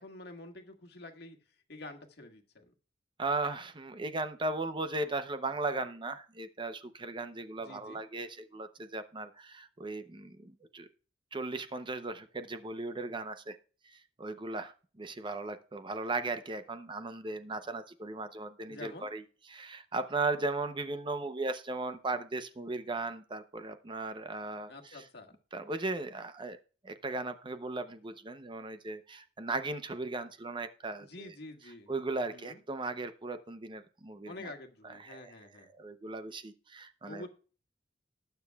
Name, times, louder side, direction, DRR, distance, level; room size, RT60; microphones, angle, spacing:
voice 1, 0.0-1.4 1.7-2.7 7.6-8.0 18.7-19.1 24.7-25.4 31.0-31.9 32.3-32.6 34.3-35.7 37.0-37.3, left 2 dB, 65° left, 3 dB, 1.7 m, -48 dB
voice 2, 3.2-10.9 11.3-13.6 14.2-19.2 19.5-25.0 25.5-26.6 26.8-31.3 31.9-34.5 35.0-35.3 35.8-37.3, right 3 dB, 25° right, 10 dB, 0.7 m, -37 dB
19.0 x 6.9 x 2.3 m, 0.38 s
head